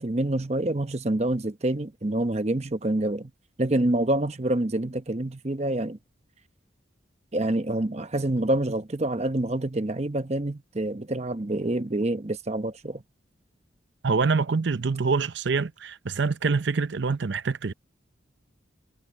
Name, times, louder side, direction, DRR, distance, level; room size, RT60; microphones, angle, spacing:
voice 1, 0.0-3.3 3.6-6.0 7.3-13.0, right 1 dB, 35° right, 0.9 m, -27 dB
voice 2, 14.0-17.7, right 4 dB, 65° right, 0.6 m, -25 dB
head